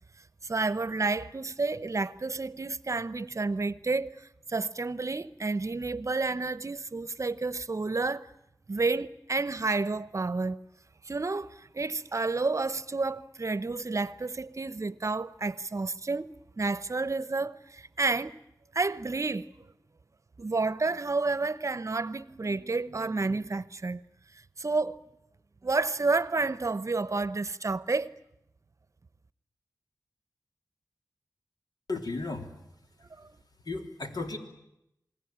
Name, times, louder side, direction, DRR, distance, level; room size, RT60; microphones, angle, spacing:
voice 1, 0.4-8.3 8.7-10.6 11.0-18.4 18.7-19.5 20.4-24.0 24.6-25.0 25.6-28.1 33.2-33.3, right 3 dB, 45° right, 0.9 m, -30 dB
voice 2, 31.9-32.5 33.7-34.4, left 3 dB, 65° left, 3.5 m, -34 dB
28.0 x 19.5 x 8.9 m
wide cardioid pair, 60°, 7 cm